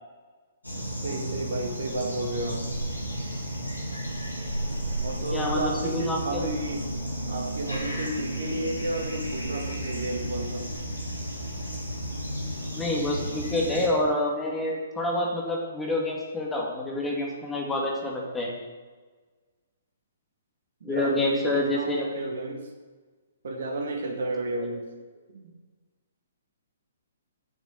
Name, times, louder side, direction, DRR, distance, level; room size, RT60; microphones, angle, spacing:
sound 1, 0.6-13.9, right 1 dB, 85° left, 3.8 m, -33 dB
voice 1, 1.0-2.7 5.0-6.9 7.3-10.7 20.8-22.6 23.4-24.8 25.3-25.5, right 2 dB, 55° right, 3 dB, 2.0 m, -32 dB
voice 2, 5.3-6.5 12.7-18.5 20.8-22.2, left 1 dB, 10° left, -2 dB, 2.4 m, -28 dB
10.5 x 6.8 x 8.0 m, 1.4 s
figure-of-eight pair, 125°, 0 cm